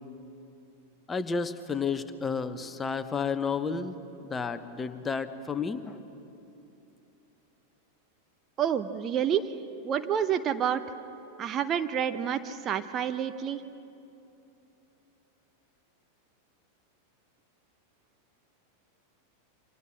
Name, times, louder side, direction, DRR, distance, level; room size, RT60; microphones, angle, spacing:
voice 1, 1.1-3.9 4.2-6.0, left 5 dB, 15° left, 11 dB, 1.0 m, -31 dB
voice 2, 8.6-9.5 9.8-10.8 11.4-13.6, right 9 dB, 30° right, 10 dB, 0.8 m, -28 dB
28.0 x 25.0 x 6.0 m, 2.9 s
figure-of-eight pair, 90°, 0 cm